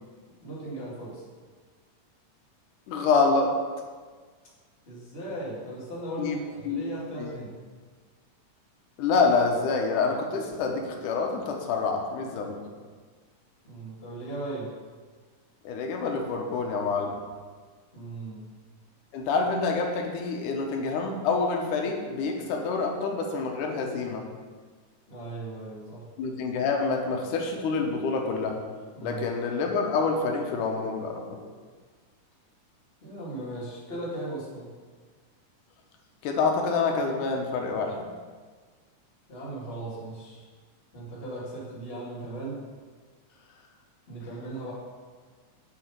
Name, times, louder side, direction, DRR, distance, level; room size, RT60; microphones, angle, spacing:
voice 1, 0.4-1.2 4.9-7.6 13.6-14.7 17.9-18.5 25.1-26.0 28.9-29.3 33.0-34.7 39.3-40.4 40.9-42.6 44.1-44.7, right 2 dB, 20° left, -7 dB, 2.4 m, -37 dB
voice 2, 2.9-3.6 6.2-6.4 6.6-6.8 7.2-7.3 9.0-12.6 15.6-17.2 19.1-24.3 26.2-28.6 29.0-31.4 36.2-38.1, left 4 dB, 85° left, 2 dB, 2.4 m, -27 dB
7.3 x 7.3 x 5.2 m, 1.5 s
omnidirectional pair, 3.6 m